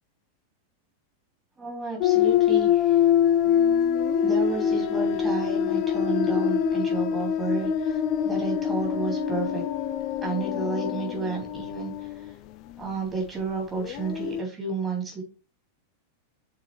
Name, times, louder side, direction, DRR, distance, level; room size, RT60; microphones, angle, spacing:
voice 1, 1.6-3.0 4.2-9.6 10.2-11.9 12.8-15.2, right 4 dB, 15° right, 0 dB, 3.8 m, -32 dB
sound 1, 2.0-12.3 13.8-14.4, left 8 dB, 40° left, 0.6 m, -24 dB
6.6 x 4.7 x 4.8 m, 0.34 s
figure-of-eight pair, 90°, 0 cm